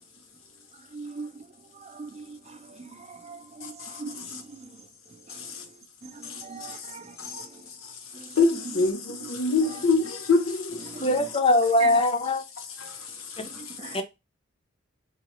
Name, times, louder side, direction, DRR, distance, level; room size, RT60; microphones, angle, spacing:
voice 1, 0.7-7.7 8.1-8.8 9.2-9.3 9.7-9.8 10.8-11.3 11.8-12.0 13.4-14.0, right 4 dB, 30° right, 0.4 m, -41 dB
voice 2, 3.6-4.4 5.3-5.6 6.2-6.9 7.2-7.5 7.8-7.9 8.4-11.0 12.8-14.0, left 3 dB, 90° left, 0.9 m, -27 dB
voice 3, 11.0-12.4 13.4-13.5 13.9-14.0, left 2 dB, 25° left, 0.5 m, -22 dB
4.8 x 2.0 x 2.9 m
head